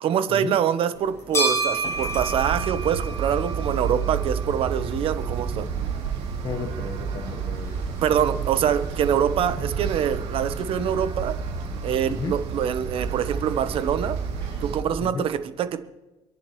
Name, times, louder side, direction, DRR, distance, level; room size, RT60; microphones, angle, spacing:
voice 1, 0.0-5.7 8.0-11.4 11.8-14.2 14.6-15.8, right 9 dB, 55° right, 10 dB, 1.0 m, -25 dB
sound 1, 1.0-14.8, right 2 dB, 25° left, 6.5 m, -35 dB
sound 2, 1.9-14.8, right 6 dB, 85° right, 2.6 m, -30 dB
voice 2, 6.4-7.8 12.1-12.3 15.1-15.2, left 5 dB, 40° left, 5 dB, 1.3 m, -33 dB
28.0 x 11.0 x 3.1 m, 1.1 s
cardioid pair, 145°, 11 cm